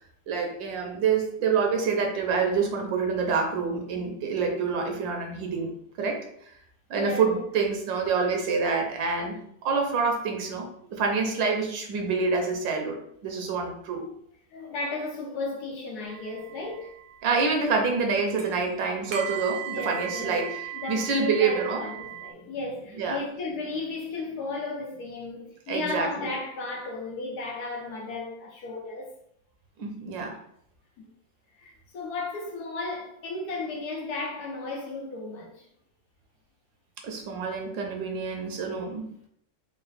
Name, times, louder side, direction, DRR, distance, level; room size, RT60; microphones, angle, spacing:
voice 1, 0.3-5.7 6.0-6.5 6.9-9.4 9.6-14.0 17.2-21.8 23.0-23.2 25.7-26.3 29.8-30.4 37.0-39.1, right 5 dB, 90° right, 1.5 m, -27 dB
voice 2, 6.9-7.4 13.9-14.0 14.5-16.9 19.7-20.4 20.7-29.1 31.0-31.1 31.6-35.5, left 3 dB, 65° left, 1.2 m, -34 dB
sound 1, 16.1-22.3, right 12 dB, 65° right, 0.9 m, -39 dB
3.9 x 2.1 x 4.0 m
omnidirectional pair, 1.9 m